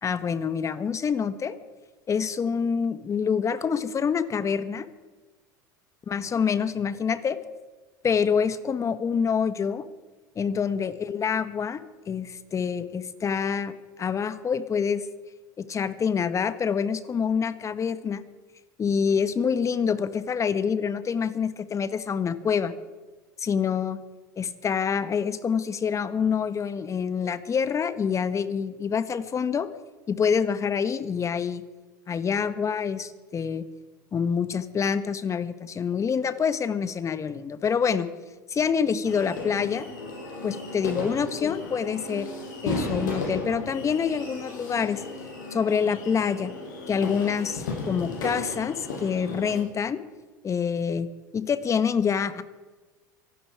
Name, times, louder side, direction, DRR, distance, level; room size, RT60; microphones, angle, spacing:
voice 1, 0.0-1.5 2.1-4.9 6.1-7.4 8.0-9.9 10.4-15.0 15.6-18.2 18.8-22.7 23.4-24.0 24.4-29.7 30.1-31.6 32.1-33.6 34.1-38.1 38.5-39.9 40.4-42.3 42.6-45.0 45.5-46.5 46.9-50.0 50.4-51.1 51.3-52.4, left 6 dB, 30° left, 13 dB, 1.3 m, -26 dB
sound 1, 39.0-49.6, left 2 dB, 75° left, 5.6 m, -35 dB
24.5 x 11.5 x 4.8 m, 1.3 s
hypercardioid pair, 80°, 10 cm